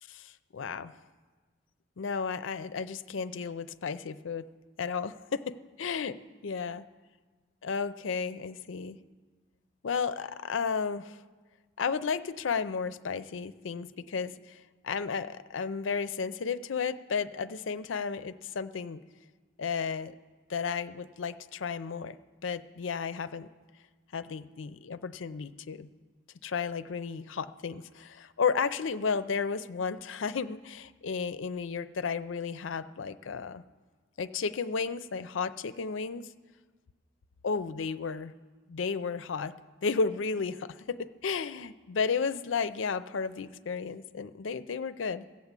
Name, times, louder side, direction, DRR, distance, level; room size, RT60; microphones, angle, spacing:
voice 1, 0.1-0.9 2.0-4.5 4.8-6.8 7.6-9.0 9.8-11.2 11.8-19.0 19.6-20.1 20.5-22.2 22.4-23.5 24.1-25.9 26.4-33.6 34.2-36.3 37.4-38.3 38.7-39.5 39.8-45.3, left 5 dB, 75° left, 13 dB, 0.5 m, -33 dB
16.0 x 7.2 x 8.1 m, 1.4 s
head